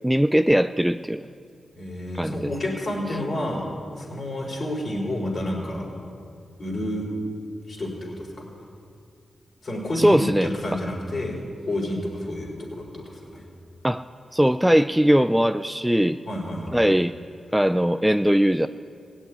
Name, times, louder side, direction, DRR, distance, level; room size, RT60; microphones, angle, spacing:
voice 1, 0.0-1.2 2.1-2.5 10.0-10.5 13.8-14.0 14.3-16.2 16.7-17.1 17.5-18.7, equal, 5° right, 11 dB, 0.3 m, -20 dB
voice 2, 1.8-3.7 4.0-5.9 6.6-7.0 7.7-8.5 9.6-11.3 11.6-13.5 16.3-16.8, left 1 dB, 50° left, -2 dB, 4.8 m, -29 dB
17.5 x 7.4 x 9.5 m, 2.3 s
cardioid pair, 65°, 0 cm